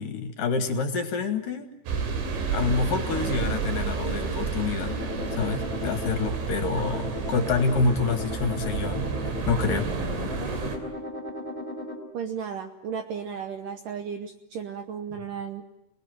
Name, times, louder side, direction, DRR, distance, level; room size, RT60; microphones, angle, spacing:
voice 1, 0.0-1.7 2.5-4.9 5.3-9.9, left 4 dB, 60° left, 7 dB, 2.7 m, -27 dB
sound 1, 1.9-10.8, right 5 dB, 90° right, 5.4 m, -30 dB
sound 2, 4.9-12.0, left 3 dB, 10° left, 4.2 m, -36 dB
voice 2, 12.1-15.6, right 7 dB, 70° right, 7 dB, 2.1 m, -34 dB
28.5 x 20.0 x 9.2 m, 0.89 s
omnidirectional pair, 5.1 m